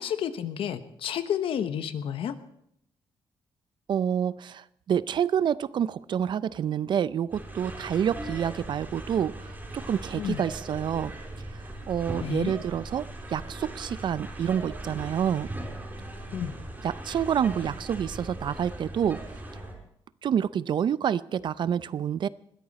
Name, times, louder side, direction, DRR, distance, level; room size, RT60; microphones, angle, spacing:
voice 1, 0.0-2.3 10.2-10.4 12.1-12.5 16.3-16.5, left 9 dB, 80° left, 11 dB, 1.1 m, -31 dB
voice 2, 3.9-11.1 11.9-15.5 16.8-19.2 20.2-22.3, right 8 dB, 55° right, 18 dB, 0.5 m, -28 dB
sound 1, 7.3-19.7, right 1 dB, 20° right, 4.7 m, -39 dB
20.5 x 13.5 x 4.2 m, 0.75 s
cardioid pair, 120°, 9 cm